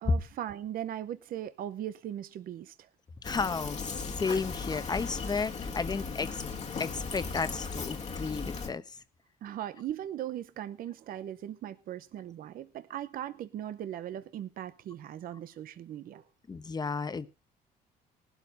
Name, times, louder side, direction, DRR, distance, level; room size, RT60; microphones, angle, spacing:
voice 1, 0.0-2.9 9.4-16.2, right 11 dB, 60° right, 0.7 m, -39 dB
Fill (with liquid), 3.2-8.7, left 4 dB, 40° left, 1.7 m, -37 dB
voice 2, 3.2-6.4 6.8-9.0 16.5-17.3, left 4 dB, 25° left, 1.0 m, -32 dB
19.5 x 12.0 x 2.6 m
cardioid pair, 110°, 17 cm